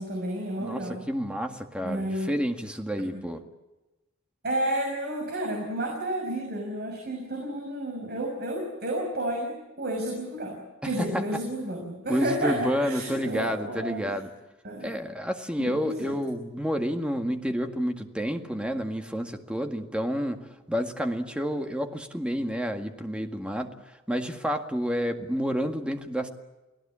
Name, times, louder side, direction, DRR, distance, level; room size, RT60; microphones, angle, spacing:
voice 1, 0.0-1.0 1.8-2.3 3.1-3.2 4.4-14.0 14.6-14.9 15.6-16.2, right 1 dB, 50° right, 1 dB, 6.1 m, -31 dB
voice 2, 0.6-3.4 10.8-11.2 12.1-14.3 14.8-23.8 24.1-26.3, equal, 5° right, 5 dB, 1.9 m, -29 dB
29.5 x 18.5 x 8.7 m, 1.1 s
head